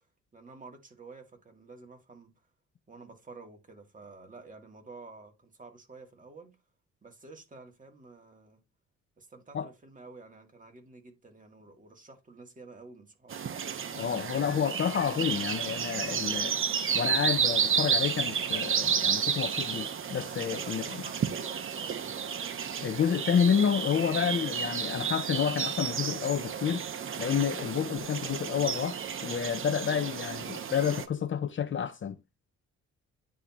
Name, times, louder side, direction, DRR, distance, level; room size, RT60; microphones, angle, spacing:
voice 1, 0.3-2.3 2.9-6.6 7.0-8.6 9.2-13.3 20.5-22.1, right 3 dB, 25° right, 2.2 m, -50 dB
sound 1, 13.3-31.1, right 7 dB, 45° right, 1.0 m, -32 dB
voice 2, 13.9-16.6 16.9-20.8 22.8-26.9 27.2-32.2, left 8 dB, 40° left, 0.7 m, -29 dB
10.0 x 3.8 x 3.0 m
cardioid pair, 90°, 30 cm